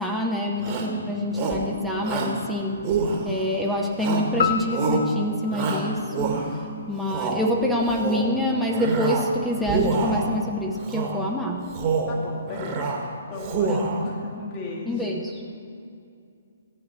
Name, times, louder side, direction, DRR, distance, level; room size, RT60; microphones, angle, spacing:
voice 1, 0.0-2.8 3.2-11.7 13.7-14.1 14.9-15.5, left 1 dB, ahead, -1 dB, 0.9 m, -26 dB
Shout, 0.6-1.0 1.3-1.7 2.0-2.4 2.8-3.5 4.0-4.4 4.7-5.1 5.5-6.6 7.0-7.4 7.8-8.3 8.7-9.3 9.6-10.3 10.8-11.2 11.6-12.2 12.5-13.0 13.3-14.1, right 3 dB, 30° right, 1.5 m, -26 dB
sound 1, 4.4-6.9, left 7 dB, 60° left, 0.6 m, -30 dB
voice 2, 12.1-12.8 13.3-13.7 14.0-15.0, left 3 dB, 30° left, -3 dB, 2.3 m, -36 dB
15.0 x 9.3 x 4.2 m, 2.4 s
figure-of-eight pair, 130°, 0 cm